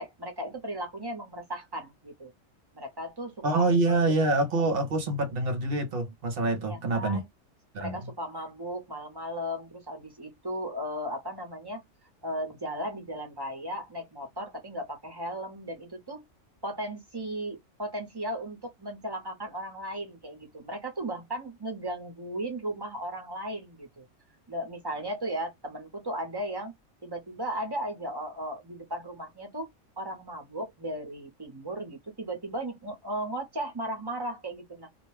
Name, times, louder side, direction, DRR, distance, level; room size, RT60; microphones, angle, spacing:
voice 1, 0.0-2.3 2.7-3.7 6.7-7.3 7.8-11.8 12.2-16.2 16.6-24.1 24.5-26.7 27.0-29.7 30.0-34.9, right 1 dB, 20° right, 0.7 m, -36 dB
voice 2, 3.4-7.2 7.7-8.0, right 2 dB, 55° right, 0.8 m, -26 dB
2.4 x 2.2 x 3.1 m
omnidirectional pair, 1.3 m